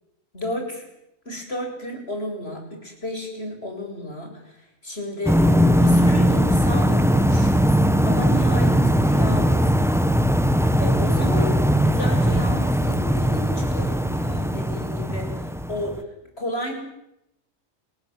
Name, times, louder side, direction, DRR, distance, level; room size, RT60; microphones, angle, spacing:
voice 1, 0.3-0.9 1.2-9.9 10.8-16.8, left 1 dB, 50° left, 3 dB, 8.1 m, -32 dB
sound 1, 5.3-16.0, equal, ahead, 1.3 m, -19 dB
29.5 x 19.5 x 9.5 m, 0.83 s
omnidirectional pair, 1.4 m